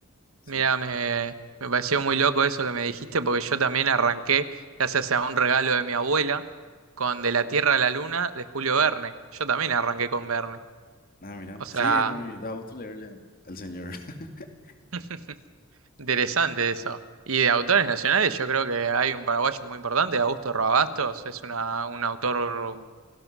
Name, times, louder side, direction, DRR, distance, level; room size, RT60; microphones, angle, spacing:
voice 1, 0.5-1.3 1.6-4.4 4.8-6.4 7.0-9.1 9.4-10.6 11.6-12.1 14.9-15.0 16.0-17.0 17.3-22.8, right 5 dB, 70° right, 11 dB, 1.2 m, -25 dB
voice 2, 11.2-14.7, left 1 dB, 45° left, 5 dB, 2.4 m, -37 dB
28.0 x 18.0 x 6.2 m, 1.5 s
head